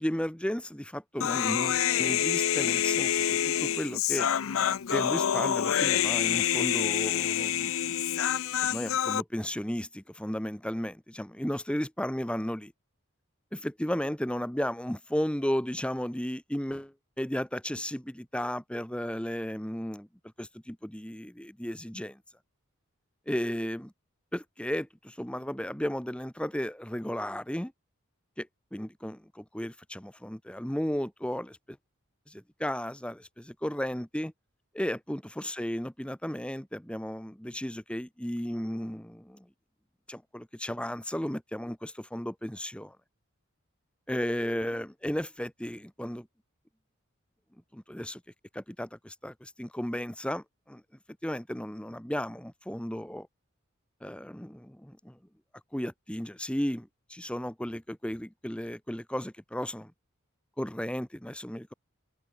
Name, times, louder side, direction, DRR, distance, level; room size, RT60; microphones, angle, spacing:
voice 1, 0.0-4.3 4.9-8.0 8.6-12.7 13.5-20.1 20.4-22.2 23.3-23.9 24.3-27.7 28.4-31.8 32.3-34.3 34.7-39.5 40.1-43.0 44.1-46.3 47.7-48.2 48.5-50.8 51.2-53.3 54.0-55.2 55.7-59.9 60.6-61.7, equal, 5° left, 1.1 m, -34 dB
Human voice, 1.2-9.2, left 10 dB, 75° left, 0.5 m, -27 dB
head